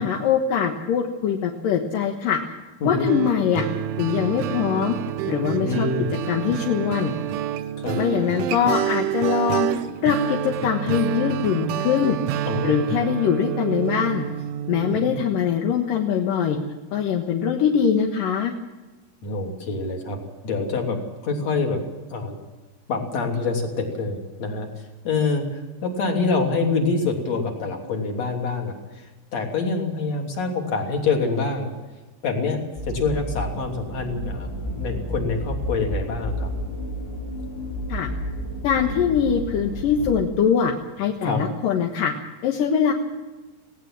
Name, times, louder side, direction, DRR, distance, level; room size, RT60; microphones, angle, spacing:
voice 1, 0.0-2.4 2.8-3.6 4.0-5.0 5.3-5.9 6.3-7.1 8.0-12.2 12.6-14.3 14.7-16.6 16.9-18.5 37.9-38.1 38.6-42.1 42.4-42.9, left 7 dB, 65° left, 3 dB, 2.4 m, -22 dB
sound 1, 3.1-15.3, right 11 dB, 85° right, 3.4 m, -28 dB
voice 2, 5.6-6.1 7.8-8.0 12.4-13.0 19.2-21.8 22.1-22.4 22.9-31.7 32.2-36.5 41.2-41.5, left 4 dB, 40° left, 2 dB, 3.8 m, -26 dB
sound 2, 32.8-40.2, equal, 85° left, 7.4 m, -31 dB
19.0 x 18.0 x 7.6 m, 1.2 s
omnidirectional pair, 5.4 m